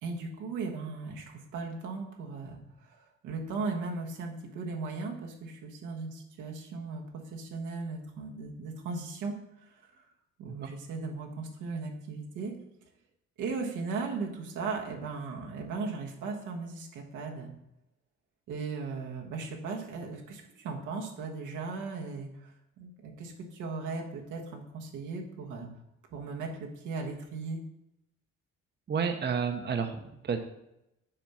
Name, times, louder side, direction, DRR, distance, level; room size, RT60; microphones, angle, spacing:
voice 1, 0.0-2.6 2.9-9.4 9.8-9.9 10.4-12.5 13.4-17.5 18.5-22.5 22.8-25.7 26.1-27.6, right 4 dB, 90° right, 1 dB, 1.3 m, -37 dB
voice 2, 28.9-30.4, right 6 dB, 35° right, 6 dB, 0.7 m, -30 dB
7.3 x 3.5 x 5.6 m, 0.85 s
cardioid pair, 90°, 30 cm